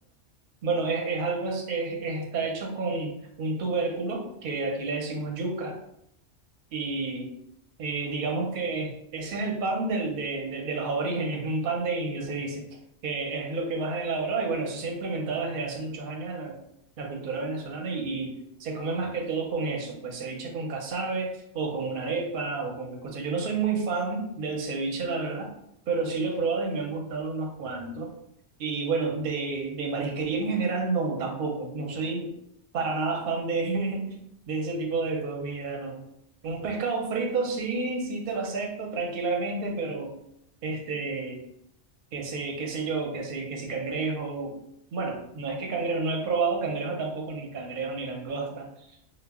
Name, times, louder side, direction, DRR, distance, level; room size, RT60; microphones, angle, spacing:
voice 1, 0.6-5.7 6.7-7.3 7.8-12.7 13.0-16.6 17.0-18.3 18.6-25.5 25.9-28.1 28.6-32.3 32.7-34.1 34.5-36.0 36.4-40.1 40.6-41.4 42.1-44.5 44.9-48.7, right 3 dB, 60° right, 0 dB, 0.7 m, -30 dB
2.1 x 2.0 x 3.4 m, 0.75 s
omnidirectional pair, 1.2 m